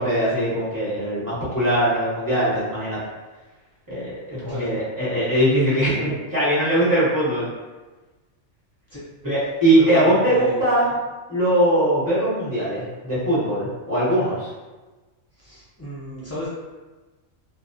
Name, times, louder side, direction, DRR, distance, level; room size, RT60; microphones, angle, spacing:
voice 1, 0.0-3.0 3.9-7.5 9.2-10.9 11.3-14.5, right 1 dB, 15° right, -11 dB, 0.9 m, -21 dB
voice 2, 9.8-10.6 15.4-16.5, right 1 dB, 20° left, -10 dB, 0.5 m, -33 dB
2.3 x 2.2 x 2.5 m, 1.2 s
omnidirectional pair, 1.4 m